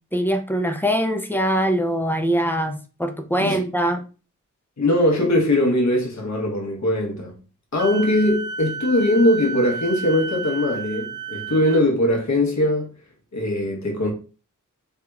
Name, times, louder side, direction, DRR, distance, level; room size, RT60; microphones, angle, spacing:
voice 1, 0.1-4.0, equal, 5° left, 0.5 m, -22 dB
voice 2, 4.8-7.4 7.7-12.9 13.3-14.1, left 1 dB, 60° left, 1.1 m, -21 dB
Wind instrument woodwind instrument, 7.8-11.8, right 4 dB, 70° right, 0.5 m, -32 dB
3.4 x 2.9 x 2.3 m
wide cardioid pair, 85°, 31 cm